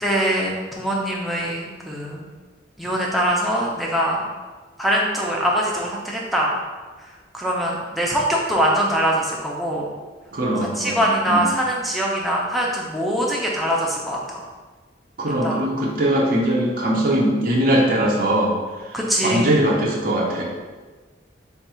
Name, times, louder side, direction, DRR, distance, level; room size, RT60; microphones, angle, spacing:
voice 1, 0.0-2.2 2.8-4.2 4.8-6.5 7.3-9.9 10.8-14.4 15.4-15.6 18.9-19.5, equal, ahead, -4 dB, 0.5 m, -22 dB
voice 2, 10.3-11.5 15.2-18.5 18.8-20.4, right 1 dB, 50° right, -3 dB, 0.6 m, -21 dB
3.5 x 2.3 x 4.2 m, 1.3 s
head